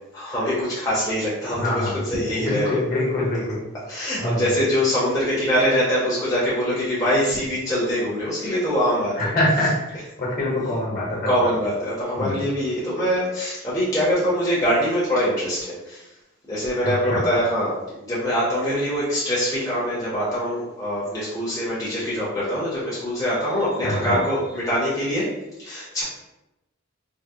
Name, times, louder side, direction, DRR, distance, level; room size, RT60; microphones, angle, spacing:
voice 1, 0.1-2.8 3.9-9.2 11.2-16.1 16.5-25.3 25.6-26.0, equal, 15° left, -9 dB, 0.7 m, -23 dB
voice 2, 1.6-1.9 2.4-3.6 4.2-4.5 9.2-11.5 12.2-12.4 16.8-17.2 23.8-24.1, left 1 dB, 45° left, -5 dB, 1.0 m, -24 dB
3.5 x 2.0 x 2.6 m, 0.93 s
head